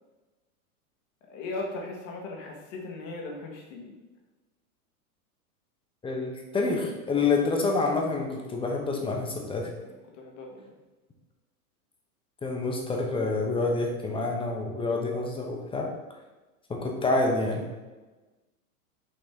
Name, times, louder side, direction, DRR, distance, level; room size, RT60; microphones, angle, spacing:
voice 1, 1.3-4.0 9.8-10.8, left 2 dB, 55° left, 1 dB, 1.6 m, -38 dB
voice 2, 6.0-9.7 12.4-15.9 16.7-17.7, left 3 dB, 10° left, 1 dB, 0.9 m, -27 dB
6.4 x 4.1 x 3.6 m, 1.2 s
hypercardioid pair, 120°, 45 cm